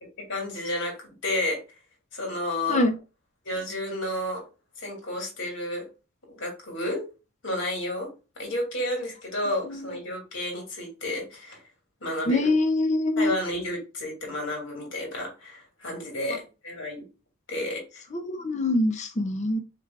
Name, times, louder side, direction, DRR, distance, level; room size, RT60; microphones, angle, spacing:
voice 1, 0.2-1.6 2.1-2.8 3.4-4.4 4.8-5.9 6.3-7.1 7.4-8.1 8.4-11.6 12.0-12.5 13.2-17.0 17.5-18.0, left 1 dB, 55° left, 0 dB, 2.4 m, -31 dB
voice 2, 12.3-13.3 18.1-19.6, left 2 dB, 35° left, 7 dB, 0.5 m, -24 dB
6.7 x 3.3 x 2.4 m, 0.31 s
head